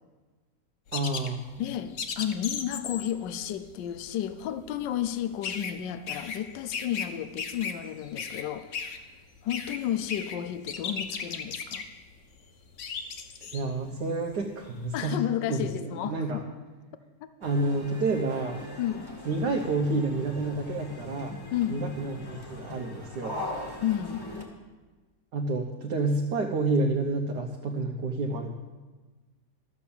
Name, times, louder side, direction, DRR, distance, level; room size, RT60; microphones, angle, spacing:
sound 1, 0.9-7.1 7.4-14.7, left 6 dB, 50° left, 1.1 m, -36 dB
voice 1, 0.9-1.4 13.5-15.2 15.5-16.4 17.4-18.7 19.2-21.4 21.7-23.4 25.3-28.5, right 2 dB, 70° right, 2 dB, 1.6 m, -29 dB
voice 2, 1.6-8.7 9.4-11.9 14.9-16.5 18.8-19.1 21.5-21.9 23.8-24.3, left 11 dB, 85° left, 11 dB, 1.4 m, -32 dB
sound 2, 17.4-24.5, left 1 dB, 15° left, 1.5 m, -41 dB
13.0 x 8.2 x 7.1 m, 1.3 s
omnidirectional pair, 1.9 m